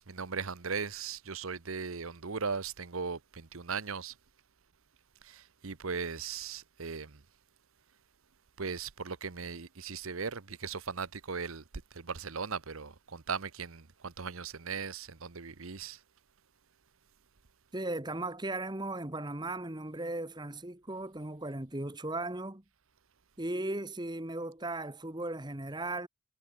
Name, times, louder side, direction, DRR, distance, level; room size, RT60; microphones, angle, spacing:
voice 1, 0.0-4.1 5.2-7.1 8.6-11.6 11.9-16.0, right 5 dB, 75° right, 1.0 m, -38 dB
voice 2, 17.7-22.6 23.4-26.1, right 2 dB, 20° right, 1.4 m, -37 dB
head